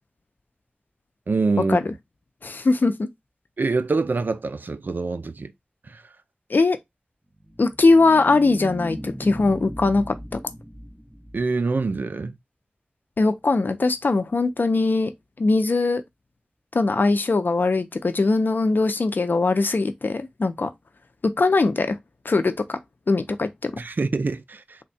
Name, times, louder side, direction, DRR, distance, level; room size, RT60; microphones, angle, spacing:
voice 1, 1.3-1.8 3.6-5.5 5.9-6.0 11.3-12.4 23.8-24.8, right 3 dB, 75° right, 0.4 m, -25 dB
voice 2, 2.4-3.1 6.5-6.8 7.6-10.1 13.2-15.1 15.4-16.0 16.7-20.7 21.4-22.0 22.2-22.8 23.1-23.7, left 3 dB, 80° left, 0.5 m, -21 dB
sound 1, 7.3-11.9, equal, 10° right, 0.9 m, -37 dB
3.6 x 2.2 x 4.1 m
wide cardioid pair, 60°, 3 cm